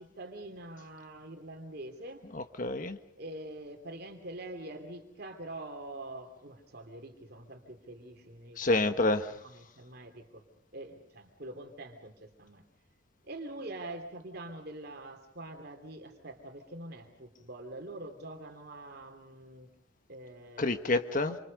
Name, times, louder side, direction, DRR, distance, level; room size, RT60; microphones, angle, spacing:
voice 1, 0.0-2.2 3.2-8.9 9.4-10.4 10.7-12.6 13.3-19.7 20.1-20.8 21.2-21.4, right 1 dB, 50° right, 4 dB, 3.0 m, -45 dB
voice 2, 2.3-3.0 8.6-9.3 20.6-21.4, left 2 dB, 40° left, 8 dB, 1.4 m, -28 dB
28.5 x 26.5 x 5.3 m, 0.65 s
head